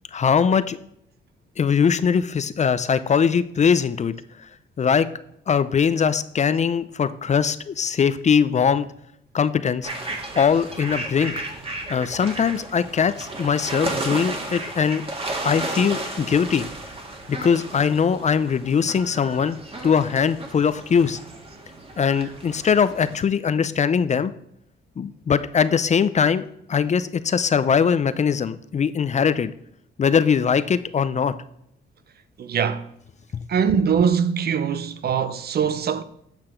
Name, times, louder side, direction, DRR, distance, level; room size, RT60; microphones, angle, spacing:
voice 1, 0.1-0.8 1.6-4.1 4.8-5.1 5.5-8.9 9.3-9.9 10.4-11.3 11.9-15.0 15.4-16.6 17.3-19.6 19.8-21.2 22.0-24.3 25.0-26.4 26.7-29.5 30.0-31.3, left 6 dB, 35° left, 0.5 m, -21 dB
sound 1, 9.8-23.2, right 2 dB, 30° right, 1.9 m, -33 dB
voice 2, 32.4-32.9 33.5-36.0, right 7 dB, 50° right, 0.7 m, -22 dB
8.7 x 5.8 x 4.5 m
cardioid pair, 90°, 20 cm